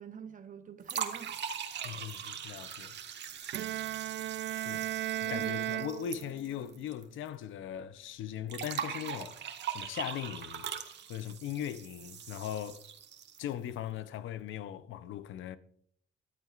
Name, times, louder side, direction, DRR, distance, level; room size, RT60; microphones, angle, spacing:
voice 1, 0.0-1.4 1.9-2.0 4.6-4.9 5.2-5.5, right 8 dB, 40° right, 0.8 m, -45 dB
sound 1, 0.8-7.0 7.3-7.4 8.5-13.5, right 8 dB, 60° right, 1.4 m, -41 dB
voice 2, 1.8-3.0 4.5-4.9 5.2-9.4 9.7-12.8 13.4-15.6, left 10 dB, 80° left, 0.7 m, -39 dB
Bowed string instrument, 3.5-6.7, right 14 dB, 75° right, 0.5 m, -36 dB
14.0 x 12.5 x 2.5 m
cardioid pair, 90°, 20 cm